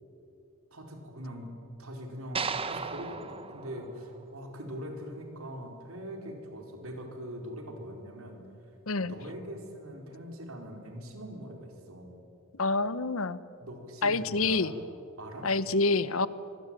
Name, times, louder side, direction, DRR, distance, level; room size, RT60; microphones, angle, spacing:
voice 1, 0.7-1.5 1.8-8.4 9.1-12.2 13.6-14.8 15.2-15.5, equal, 85° right, 3 dB, 4.6 m, -42 dB
sound 1, 2.4-4.7, right 5 dB, 25° right, 1.2 m, -36 dB
voice 2, 12.6-13.4 14.0-14.7 15.4-16.3, left 3 dB, 75° left, 16 dB, 1.0 m, -27 dB
25.0 x 20.5 x 9.1 m, 2.6 s
head